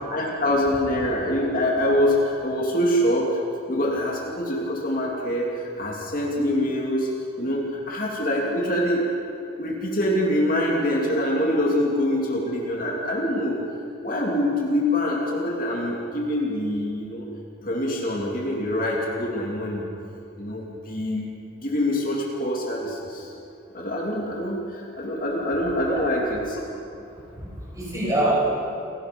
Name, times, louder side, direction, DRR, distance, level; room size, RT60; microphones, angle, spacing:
voice 1, 0.1-3.4 3.7-7.1 7.4-9.1 9.6-13.6 14.0-17.3 17.6-19.8 20.4-21.3 21.6-23.3 23.7-26.6, left 1 dB, 40° left, -2 dB, 2.7 m, -25 dB
voice 2, 27.3-28.3, right 1 dB, 15° right, -5 dB, 6.7 m, -26 dB
28.5 x 18.0 x 5.3 m, 2.8 s
head